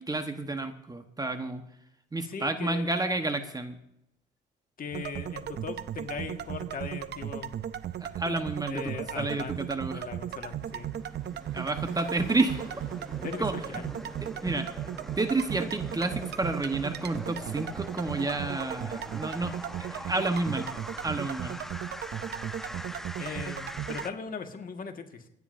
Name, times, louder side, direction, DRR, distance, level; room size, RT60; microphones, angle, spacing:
voice 1, 0.0-1.6 2.1-3.8 8.0-10.1 11.5-12.7 13.4-13.8 14.2-14.7 15.2-20.7 21.0-21.6, right 2 dB, 20° right, 7 dB, 1.1 m, -30 dB
voice 2, 2.2-2.9 4.8-7.5 8.7-9.6 9.9-10.9 13.2-13.9 23.2-25.3, left 5 dB, 45° left, 5 dB, 1.6 m, -39 dB
sound 1, 4.9-24.1, right 10 dB, 55° right, 0.7 m, -36 dB
sound 2, 9.8-24.1, equal, ahead, 0.7 m, -44 dB
Car, 11.0-15.4, right 4 dB, 85° right, 5.2 m, -53 dB
28.5 x 9.5 x 2.6 m, 0.83 s
cardioid pair, 85°, 20 cm